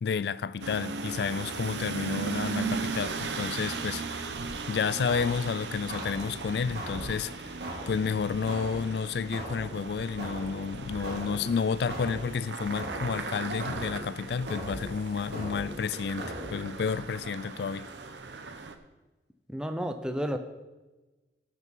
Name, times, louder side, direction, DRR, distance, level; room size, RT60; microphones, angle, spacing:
voice 1, 0.0-4.4 4.7-7.5 7.9-17.9, left 5 dB, 65° left, 0.4 m, -31 dB
sound 1, 0.6-18.7, right 4 dB, 90° right, 0.9 m, -37 dB
sound 2, 5.0-17.0, right 1 dB, 65° right, 3.1 m, -41 dB
voice 2, 19.5-20.4, equal, 5° right, 0.7 m, -31 dB
17.0 x 6.0 x 4.6 m
head